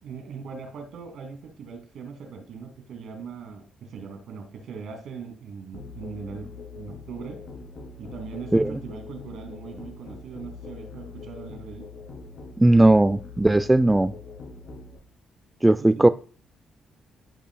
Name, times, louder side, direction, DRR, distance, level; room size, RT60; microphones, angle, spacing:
voice 1, 0.0-6.5 6.7-7.4 8.0-11.9 15.8-16.1, right 5 dB, 75° right, 2.6 m, -40 dB
Musical instrument, 5.7-15.0, left 4 dB, 65° left, 2.7 m, -42 dB
voice 2, 12.6-14.1 15.6-16.1, right 1 dB, 10° right, 0.3 m, -17 dB
13.5 x 5.4 x 2.3 m
cardioid pair, 90°, 0 cm